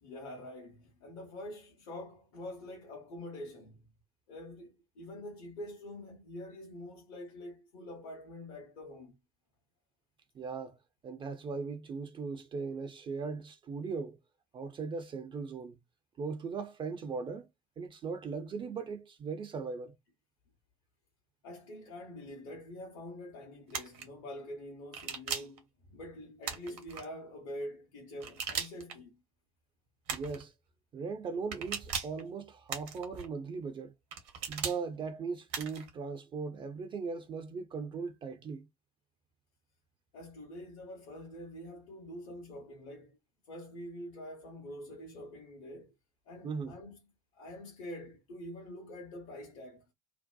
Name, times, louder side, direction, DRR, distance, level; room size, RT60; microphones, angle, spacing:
voice 1, 0.0-3.8 4.3-9.2 21.4-29.2 40.1-43.2 43.5-45.9 46.3-47.0 47.3-49.8, left 1 dB, 55° left, 0.8 m, -45 dB
voice 2, 10.3-10.8 11.0-14.2 14.5-15.8 16.2-17.5 17.8-19.9 30.1-30.5 30.9-33.9 34.5-38.7 46.4-46.7, right 5 dB, 25° right, 0.4 m, -38 dB
sound 1, 23.7-24.0 24.9-25.6 26.4-27.0 28.2-29.0 30.1-30.4 31.5-32.2 32.7-33.3 34.1-34.8 35.5-35.9, right 6 dB, 55° right, 0.7 m, -38 dB
2.6 x 2.1 x 2.2 m
figure-of-eight pair, 60°, 19 cm